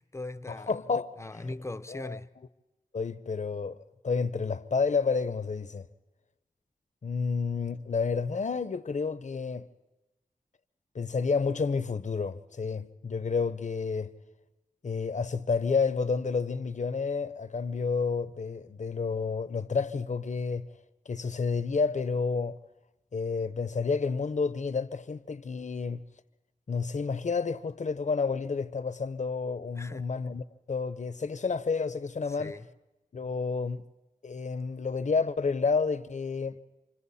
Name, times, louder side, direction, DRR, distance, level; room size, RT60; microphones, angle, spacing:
voice 1, 0.0-0.7 1.2-2.3 29.8-30.1 32.3-32.7, left 2 dB, 20° left, 0.6 m, -39 dB
voice 2, 0.7-1.2 1.5-1.6 1.9-2.2 2.9-3.8 4.0-5.9 7.0-9.7 10.9-14.1 14.8-20.7 21.1-22.6 23.1-26.0 26.7-32.6 33.1-33.8 34.2-36.6, left 4 dB, 55° left, 0.8 m, -30 dB
28.5 x 25.0 x 4.2 m
wide cardioid pair, 80°, 15 cm